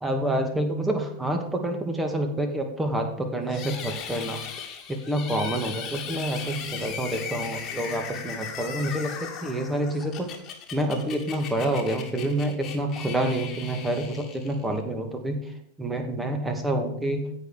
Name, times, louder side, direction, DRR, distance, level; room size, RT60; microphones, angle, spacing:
voice 1, 0.0-4.4 4.9-10.3 10.7-15.4 15.8-17.3, right 1 dB, 10° right, 4 dB, 2.2 m, -28 dB
sound 1, 3.5-14.8, left 7 dB, 30° left, 2.1 m, -38 dB
15.5 x 5.3 x 6.4 m, 0.71 s
figure-of-eight pair, 90°, 0 cm